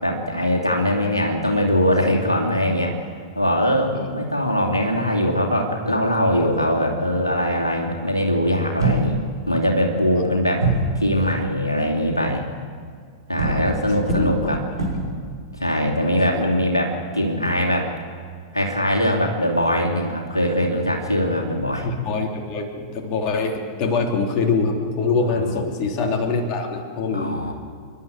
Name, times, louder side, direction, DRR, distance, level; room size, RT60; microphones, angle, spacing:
voice 1, 0.0-2.9 3.4-9.1 9.5-10.7 10.9-12.4 13.3-14.6 15.6-17.9 18.5-21.9 25.3-25.6 27.1-27.5, equal, 85° left, 0 dB, 2.6 m, -21 dB
sound 1, 8.8-9.5 10.6-11.0 13.4-15.2, right 2 dB, 85° right, 6.2 m, -23 dB
voice 2, 13.4-13.8 14.1-14.5 16.0-16.4 21.8-27.4, left 4 dB, 35° left, 2 dB, 3.1 m, -24 dB
29.5 x 11.5 x 8.0 m, 2.1 s
figure-of-eight pair, 95°, 2 cm